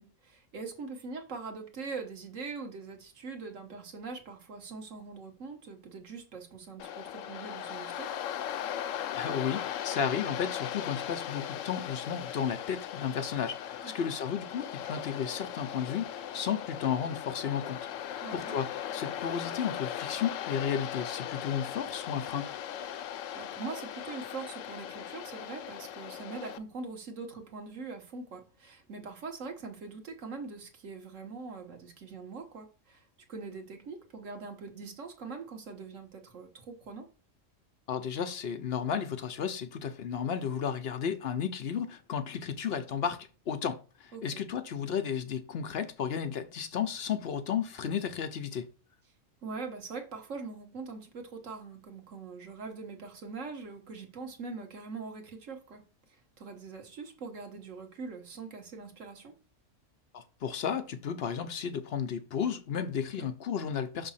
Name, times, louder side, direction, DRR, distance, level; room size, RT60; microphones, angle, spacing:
voice 1, 0.0-8.1 13.8-14.1 18.2-18.6 23.3-37.1 44.1-44.4 49.4-55.8 56.1-59.3 63.2-63.3, right 4 dB, 85° right, 1.6 m, -42 dB
Waves surf, 6.8-26.6, left 10 dB, 85° left, 0.9 m, -38 dB
voice 2, 9.1-22.5 37.9-48.7 60.1-64.1, left 7 dB, 60° left, 0.8 m, -33 dB
6.1 x 3.4 x 5.6 m
omnidirectional pair, 1.3 m